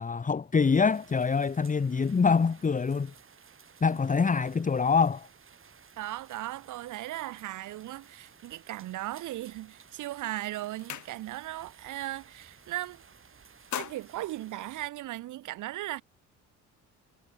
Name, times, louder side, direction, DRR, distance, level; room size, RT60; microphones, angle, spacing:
voice 1, 0.0-3.1 3.8-5.3, left 5 dB, 25° left, 1.1 m, -25 dB
sound 1, 0.6-14.9, right 6 dB, 45° right, 6.3 m, -56 dB
voice 2, 6.0-13.0 13.7-16.0, right 15 dB, 85° right, 1.6 m, -37 dB
sound 2, 9.9-10.1 10.4-11.6 12.0-12.2 12.5-13.1 13.4-15.3, left 11 dB, 70° left, 3.2 m, -42 dB
cardioid pair, 90°, 30 cm